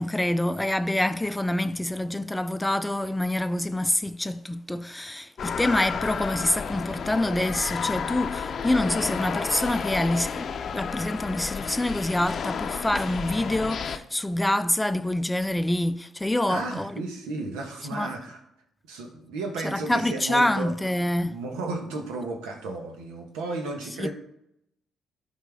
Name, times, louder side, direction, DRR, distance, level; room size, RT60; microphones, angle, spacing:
voice 1, 0.0-17.0 17.9-18.1 19.6-21.4 24.0-24.1, left 1 dB, 10° left, 0.4 m, -26 dB
sound 1, 5.4-14.0, left 6 dB, 55° left, 0.6 m, -32 dB
voice 2, 16.5-18.4 18.9-20.7 21.3-24.1, right 3 dB, 90° right, 1.2 m, -33 dB
11.5 x 4.3 x 3.6 m
supercardioid pair, 65°, 0 cm